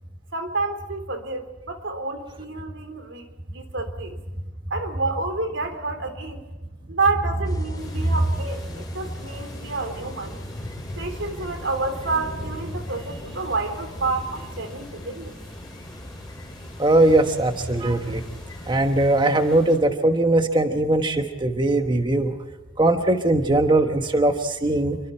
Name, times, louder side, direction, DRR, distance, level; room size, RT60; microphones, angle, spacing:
voice 1, 0.3-4.2 4.7-6.4 6.9-10.4 11.0-15.3, right 3 dB, 70° right, 7 dB, 3.4 m, -29 dB
sound 1, 7.4-18.8, left 1 dB, 20° left, 3.1 m, -38 dB
sound 2, 7.8-19.8, left 1 dB, 5° left, 7.2 m, -46 dB
voice 2, 16.8-18.2 18.7-22.3 22.8-25.0, right 2 dB, 25° right, 6 dB, 1.2 m, -20 dB
28.5 x 24.0 x 4.4 m, 1.1 s
head